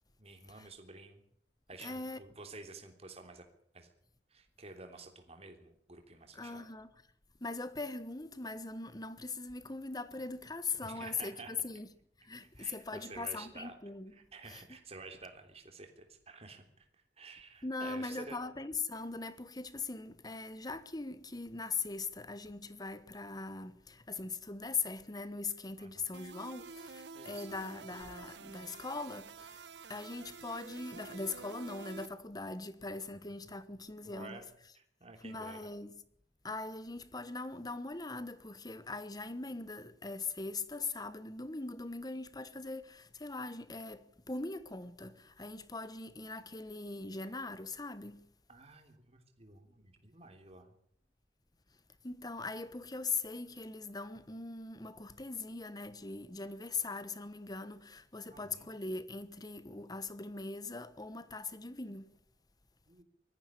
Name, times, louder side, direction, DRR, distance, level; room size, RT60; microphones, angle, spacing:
voice 1, 0.2-1.2 1.7-3.4 3.7-3.9 4.3-6.6 10.8-11.5 12.5-13.7 14.1-18.4 25.8-26.1 27.1-27.5 34.0-34.5 34.7-35.6 48.5-50.7 58.3-58.7 62.9-63.0, right 3 dB, 35° right, 3.4 m, -51 dB
voice 2, 1.8-2.2 6.3-6.9 7.4-11.9 12.2-14.1 14.5-14.6 17.6-34.4 35.2-35.9 36.4-48.3 52.0-62.2, left 3 dB, 25° left, 1.3 m, -41 dB
sound 1, 26.1-32.1, right 4 dB, 85° right, 1.3 m, -49 dB
20.5 x 14.5 x 9.9 m
head